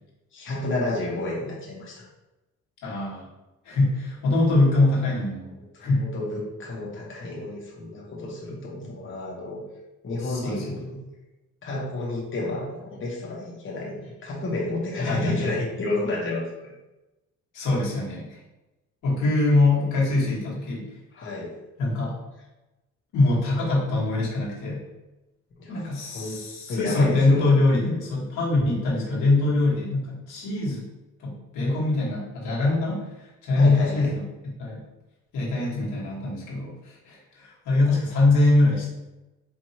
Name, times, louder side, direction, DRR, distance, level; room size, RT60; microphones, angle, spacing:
voice 1, 0.3-2.1 5.7-9.6 10.0-11.0 11.6-16.7 21.1-21.5 25.6-26.4 26.7-27.5 33.5-34.1, left 2 dB, 40° left, -4 dB, 1.0 m, -31 dB
voice 2, 2.8-3.3 3.6-6.1 10.2-10.8 15.0-15.5 17.5-18.4 19.0-21.0 21.8-22.1 23.1-24.8 25.7-30.9 31.2-34.3 34.6-34.8 35.3-38.9, left 2 dB, 80° left, -5 dB, 1.5 m, -23 dB
4.6 x 2.7 x 2.8 m, 1.0 s
cardioid pair, 90°, 30 cm